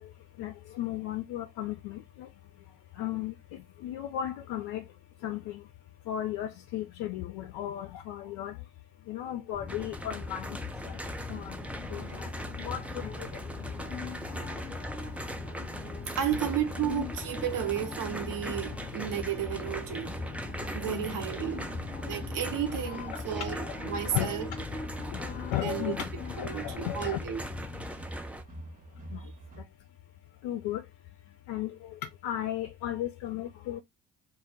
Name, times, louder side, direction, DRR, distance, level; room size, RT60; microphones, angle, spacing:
voice 1, 0.4-2.3 3.0-3.3 3.8-4.8 5.2-5.6 6.1-8.5 9.1-10.5 10.9-11.0 11.3-11.6 11.9-12.3 12.6-13.1 20.9-21.0 22.9-24.4 25.1-26.1 26.4-27.2 29.1-29.2 30.4-30.8 31.5-31.7 32.2-33.8, left 12 dB, 65° left, 0.5 m, -35 dB
sound 1, 9.5-27.9, left 5 dB, 20° left, 0.8 m, -41 dB
sound 2, 9.7-28.4, right 1 dB, 5° right, 0.4 m, -41 dB
sound 3, 10.0-29.6, right 1 dB, 20° right, 0.8 m, -45 dB
voice 2, 16.1-20.2 20.7-21.7 22.1-24.5 25.6-25.9 26.4-27.4, right 10 dB, 55° right, 0.8 m, -33 dB
2.2 x 2.1 x 3.6 m
hypercardioid pair, 45°, 40 cm